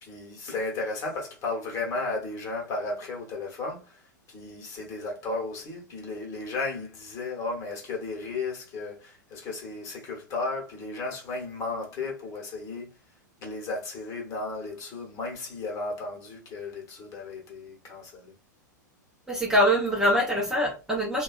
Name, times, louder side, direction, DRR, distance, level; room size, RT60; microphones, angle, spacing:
voice 1, 0.0-12.9 13.4-18.3, left 3 dB, 30° left, 1.1 m, -34 dB
voice 2, 19.3-21.2, equal, 5° right, 0.6 m, -24 dB
2.7 x 2.3 x 2.4 m
figure-of-eight pair, 95°, 10 cm